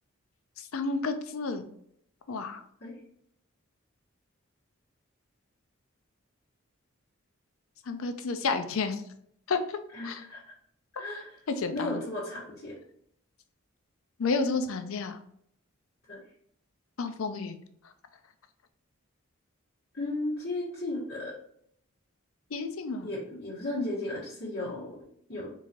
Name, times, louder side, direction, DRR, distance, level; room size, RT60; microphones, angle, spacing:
voice 1, 0.6-1.7 2.3-2.6 7.9-9.0 9.5-9.8 10.0-10.2 11.5-12.0 14.2-15.2 17.0-17.6 22.5-23.1, left 4 dB, 80° left, 9 dB, 0.5 m, -31 dB
voice 2, 9.9-10.5 10.9-11.4 11.7-12.7 16.1-16.2 19.9-21.3 23.0-25.5, left 2 dB, 55° left, -11 dB, 1.5 m, -35 dB
4.6 x 2.9 x 2.6 m, 0.68 s
head